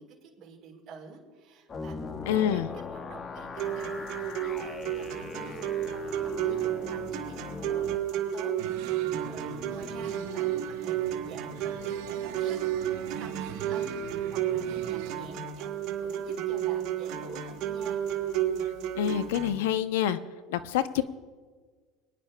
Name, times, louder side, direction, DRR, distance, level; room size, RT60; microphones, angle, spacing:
voice 1, 0.0-6.2 6.4-7.8 8.1-8.5 8.8-15.7 16.0-18.0, right 5 dB, 40° right, -2 dB, 3.7 m, -49 dB
sound 1, 1.7-8.0, left 4 dB, 25° left, 0.8 m, -40 dB
voice 2, 2.3-2.7 19.0-20.2 20.5-21.0, left 10 dB, 90° left, 12 dB, 0.6 m, -26 dB
sound 2, 3.6-19.6, right 10 dB, 55° right, 1.7 m, -32 dB
sound 3, 8.6-15.1, right 7 dB, 80° right, 1.4 m, -42 dB
23.5 x 10.5 x 2.2 m, 1.5 s
supercardioid pair, 125°, 0 cm